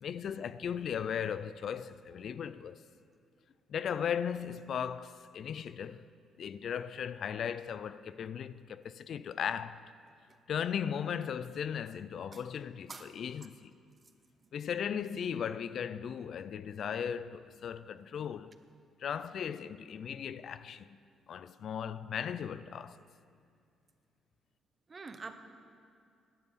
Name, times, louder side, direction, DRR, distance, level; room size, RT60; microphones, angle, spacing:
voice 1, 0.0-2.8 3.7-6.0 6.4-9.9 10.5-13.7 14.5-18.6 19.0-21.0 21.3-23.0, left 8 dB, 60° left, 0.4 m, -37 dB
voice 2, 24.9-25.3, right 4 dB, 35° right, 1.0 m, -45 dB
17.5 x 11.0 x 4.2 m
cardioid pair, 90°, 0 cm